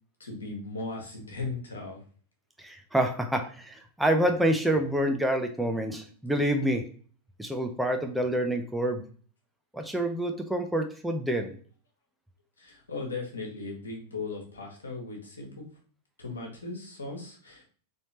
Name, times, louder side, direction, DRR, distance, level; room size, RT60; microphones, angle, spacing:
voice 1, 0.2-2.0 12.6-15.6 16.2-17.6, left 3 dB, 70° left, 1 dB, 1.4 m, -37 dB
voice 2, 2.6-6.9 7.4-9.0 9.7-11.5, right 1 dB, 5° right, 4 dB, 0.5 m, -27 dB
4.1 x 3.3 x 2.9 m, 0.42 s
figure-of-eight pair, 90°, 0 cm